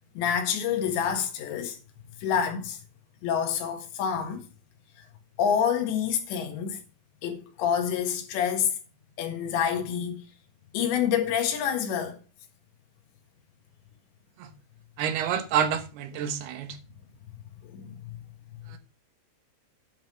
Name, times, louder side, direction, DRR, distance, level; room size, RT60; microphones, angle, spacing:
voice 1, 0.2-1.8 2.2-2.8 3.2-4.4 5.4-6.8 7.2-8.8 9.2-10.2 10.7-12.2 17.7-18.1, left 8 dB, 80° left, 4.0 m, -27 dB
voice 2, 15.0-16.8 18.7-18.8, right 8 dB, 75° right, 3.0 m, -28 dB
10.0 x 5.6 x 6.3 m
omnidirectional pair, 5.0 m